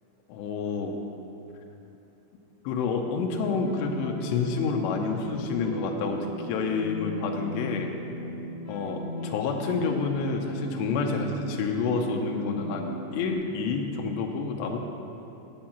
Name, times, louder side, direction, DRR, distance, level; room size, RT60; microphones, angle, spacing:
voice 1, 0.3-1.0 2.6-7.9 8.7-14.8, left 5 dB, 85° left, 1 dB, 2.8 m, -29 dB
sound 1, 3.0-13.3, equal, 55° left, 1.0 m, -37 dB
8.9 x 8.6 x 5.8 m, 2.9 s
omnidirectional pair, 5.1 m